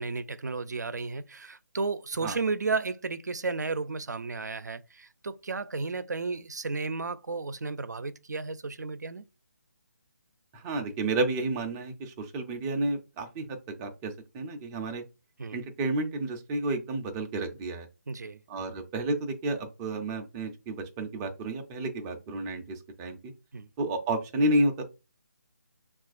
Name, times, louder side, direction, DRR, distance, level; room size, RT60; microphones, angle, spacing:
voice 1, 0.0-9.3 15.4-15.6 18.1-18.4 23.5-23.7, right 4 dB, 85° right, 0.4 m, -33 dB
voice 2, 10.5-15.0 15.5-17.9 18.5-23.3 23.8-24.9, right 2 dB, 10° right, 0.3 m, -31 dB
5.7 x 2.4 x 2.4 m
figure-of-eight pair, 160°, 9 cm